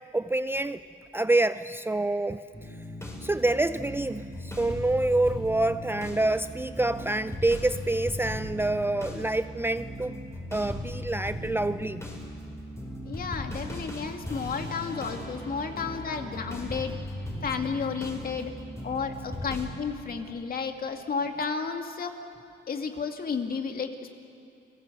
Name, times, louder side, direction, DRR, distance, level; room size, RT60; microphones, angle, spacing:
voice 1, 0.1-0.8 1.1-2.7 3.2-10.2 10.5-12.0, right 2 dB, 10° right, 12 dB, 0.5 m, -27 dB
sound 1, 2.5-19.7, left 1 dB, 15° left, 5.3 m, -38 dB
voice 2, 13.1-17.0 17.4-18.5 18.8-22.1 22.7-24.1, left 5 dB, 50° left, 4 dB, 2.4 m, -32 dB
30.0 x 19.0 x 8.0 m, 2.4 s
cardioid pair, 90°, 20 cm